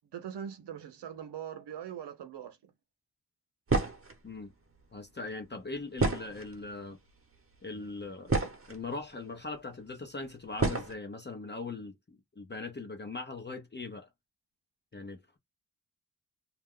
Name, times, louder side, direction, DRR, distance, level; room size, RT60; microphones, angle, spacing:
voice 1, 0.1-2.6, right 9 dB, 80° right, 0.7 m, -41 dB
sound 1, 3.7-4.2 6.0-6.7 7.5-7.6 8.0-8.8 9.7-9.8 10.6-10.9, right 3 dB, 35° right, 1.0 m, -29 dB
voice 2, 4.9-7.0 7.6-14.1 14.9-15.4, left 3 dB, 25° left, 0.7 m, -40 dB
2.4 x 2.1 x 3.6 m
cardioid pair, 50°, 41 cm